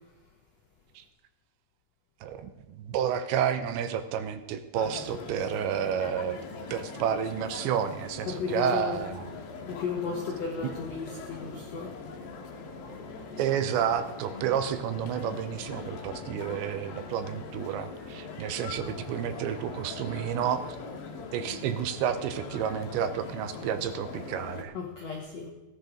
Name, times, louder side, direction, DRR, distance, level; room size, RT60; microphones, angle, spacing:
voice 1, 2.2-6.4 6.7-9.2 13.4-20.6 21.3-24.7, right 9 dB, 80° right, 10 dB, 2.9 m, -30 dB
sound 1, 4.7-24.6, left 4 dB, 60° left, 2.8 m, -41 dB
voice 2, 8.3-9.0 9.7-12.0 24.7-25.5, left 6 dB, 80° left, 0 dB, 1.5 m, -34 dB
17.0 x 10.5 x 5.0 m, 1.1 s
omnidirectional pair, 5.4 m